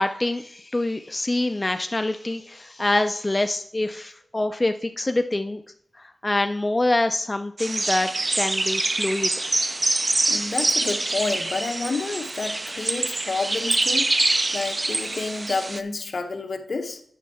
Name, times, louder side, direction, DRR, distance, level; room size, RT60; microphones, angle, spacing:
voice 1, 0.0-5.6 6.0-8.1 8.3-9.5, left 2 dB, 20° left, 7 dB, 0.4 m, -25 dB
sound 1, 7.6-15.8, right 2 dB, 35° right, 0.5 m, -25 dB
voice 2, 10.3-14.1 14.5-17.0, left 3 dB, 60° left, 6 dB, 0.9 m, -29 dB
9.2 x 6.3 x 4.2 m, 0.64 s
wide cardioid pair, 90°, 0 cm